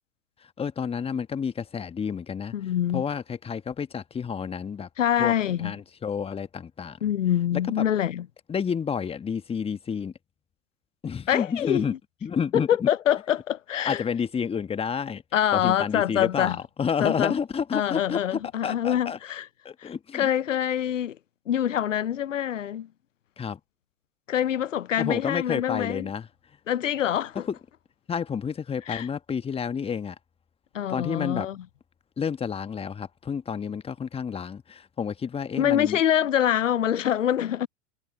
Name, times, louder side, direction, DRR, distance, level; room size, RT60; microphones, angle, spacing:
voice 1, 0.4-4.9 5.2-7.1 7.5-7.9 8.5-10.1 11.0-11.9 12.2-12.9 13.8-15.2 15.5-19.2 19.6-20.3 23.4-23.6 25.0-26.3 27.5-27.6 28.1-30.1 30.9-31.5 32.2-36.0, left 6 dB, 15° left, 1.3 m, -30 dB
voice 2, 2.5-3.0 5.0-5.7 7.0-8.2 11.3-12.0 12.5-14.0 15.3-16.6 17.0-17.3 17.7-19.5 19.8-21.2 21.5-22.9 24.3-26.1 26.7-27.5 28.9-29.1 30.7-31.6 35.6-37.7, left 10 dB, 85° left, 0.6 m, -25 dB
hypercardioid pair, 100°, 37 cm